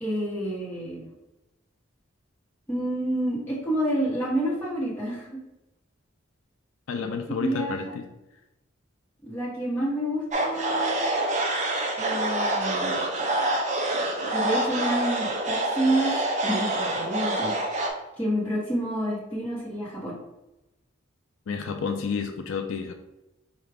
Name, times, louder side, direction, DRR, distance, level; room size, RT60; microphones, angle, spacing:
voice 1, 0.0-1.1 2.7-5.3 7.4-7.9 9.2-11.1 12.0-13.0 14.3-16.1 16.4-17.9 18.2-20.2, right 1 dB, 10° left, -8 dB, 1.0 m, -29 dB
voice 2, 6.9-8.0 21.5-22.9, left 5 dB, 70° left, 6 dB, 0.4 m, -30 dB
sound 1, 10.3-17.9, right 1 dB, 35° right, 0.5 m, -26 dB
4.7 x 2.4 x 3.4 m, 0.95 s
head